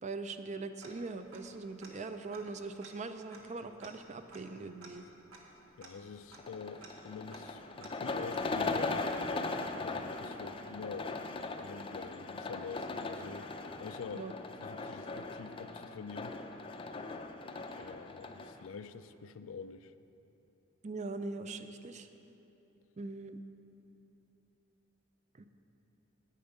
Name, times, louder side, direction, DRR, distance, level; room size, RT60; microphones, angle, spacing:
voice 1, 0.0-5.0 14.1-14.3 17.7-17.9 20.8-22.1 23.0-23.4 25.4-25.5, right 3 dB, 35° right, 9 dB, 0.5 m, -41 dB
Tick-tock, 0.8-1.6 1.8-1.9 2.3-8.8, right 3 dB, 80° right, 1.4 m, -56 dB
voice 2, 5.8-9.0 9.8-11.2 11.6-13.5 13.8-14.3 14.6-16.4 17.7-19.9, left 5 dB, 85° left, 12 dB, 0.4 m, -46 dB
sound 1, 6.4-18.7, left 3 dB, 25° left, 0.5 m, -39 dB
10.5 x 8.9 x 5.4 m, 2.9 s
head